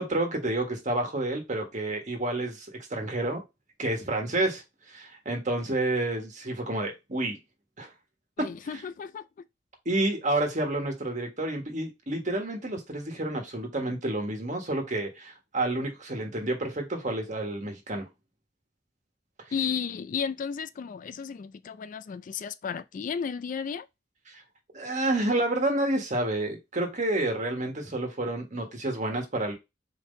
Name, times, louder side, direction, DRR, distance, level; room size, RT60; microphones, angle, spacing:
voice 1, 0.0-3.4 3.8-4.6 4.9-7.4 7.8-7.9 8.4-8.5 9.8-18.1 24.3-24.4 24.7-29.5, right 2 dB, 45° right, 1.5 m, -29 dB
voice 2, 8.4-9.3 19.5-23.9, left 6 dB, 45° left, 0.3 m, -33 dB
4.5 x 3.8 x 2.6 m
head